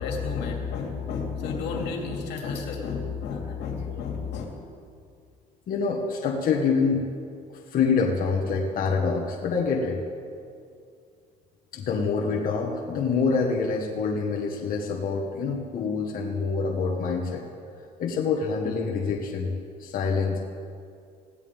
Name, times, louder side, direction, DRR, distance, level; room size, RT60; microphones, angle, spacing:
voice 1, 0.0-4.4, left 5 dB, 85° left, 1 dB, 2.6 m, -31 dB
voice 2, 5.7-7.0 7.5-10.0 11.7-17.4 18.0-19.5 19.8-20.4, left 5 dB, 55° left, -1 dB, 1.7 m, -26 dB
21.0 x 16.5 x 3.7 m, 2.3 s
cardioid pair, 110°, 17 cm